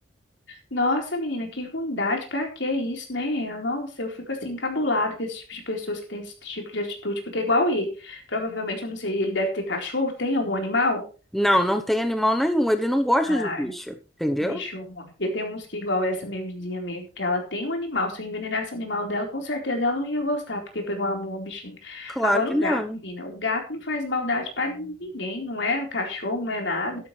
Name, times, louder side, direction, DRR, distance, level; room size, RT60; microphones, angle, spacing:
voice 1, 0.5-11.0 13.2-13.7 14.4-27.1, left 2 dB, 70° left, 2 dB, 4.3 m, -28 dB
voice 2, 11.3-13.9 14.2-14.6 22.1-23.0, equal, ahead, 6 dB, 1.0 m, -23 dB
13.0 x 12.0 x 3.3 m, 0.34 s
head